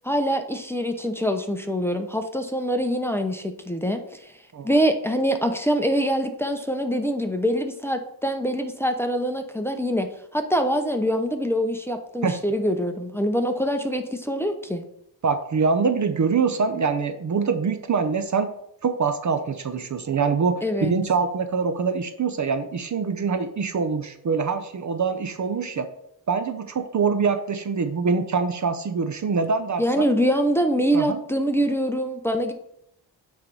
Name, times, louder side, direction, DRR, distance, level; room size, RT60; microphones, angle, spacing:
voice 1, 0.0-4.2 4.6-10.1 10.3-14.8 20.6-20.9 29.8-32.5, equal, 5° left, 5 dB, 0.7 m, -24 dB
voice 2, 15.2-18.5 18.8-25.9 26.3-30.0 30.9-31.2, right 5 dB, 40° right, 9 dB, 0.7 m, -24 dB
8.8 x 3.4 x 5.3 m, 0.73 s
cardioid pair, 95°, 43 cm